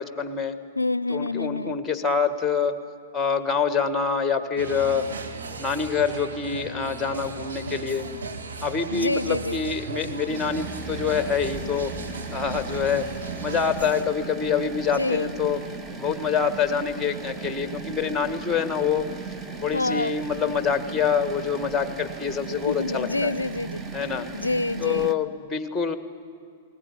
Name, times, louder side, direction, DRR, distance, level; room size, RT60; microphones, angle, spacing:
voice 1, 0.0-0.6 1.1-2.8 3.1-5.1 5.6-8.0 8.6-11.9 12.3-13.1 13.4-15.6 16.0-19.1 19.6-23.3 23.9-24.3 24.8-26.0, left 6 dB, 10° left, 11 dB, 1.6 m, -26 dB
voice 2, 0.8-1.8 8.9-9.6 15.0-15.3 19.7-20.2 22.7-23.8 24.3-25.2, left 2 dB, 85° left, 21 dB, 0.5 m, -27 dB
sound 1, 4.6-14.0, right 4 dB, 65° right, 2.2 m, -37 dB
sound 2, 10.3-25.1, right 4 dB, 15° right, 1.3 m, -37 dB
20.5 x 19.0 x 9.9 m, 2.4 s
figure-of-eight pair, 100°, 0 cm